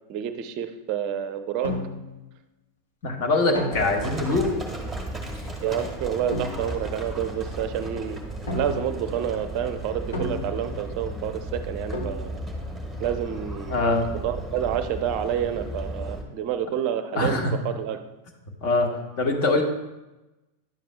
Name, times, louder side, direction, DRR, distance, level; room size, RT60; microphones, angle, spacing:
voice 1, 0.1-1.7 5.6-8.2 8.5-12.4 13.0-13.8 14.2-18.0, right 9 dB, 40° right, 9 dB, 0.5 m, -29 dB
sound 1, 1.6-2.3 3.5-4.3 6.3-6.9 8.5-9.1 10.1-10.9 11.9-12.5, left 2 dB, 70° left, 1.2 m, -33 dB
voice 2, 3.0-4.5 13.7-14.0 17.1-17.5 18.6-18.9 19.2-19.6, left 2 dB, 45° left, 2 dB, 1.4 m, -22 dB
Livestock farm animals working animals, 3.7-16.2, right 1 dB, 5° right, 1.3 m, -35 dB
10.5 x 7.5 x 2.2 m, 1.0 s
figure-of-eight pair, 90°, 0 cm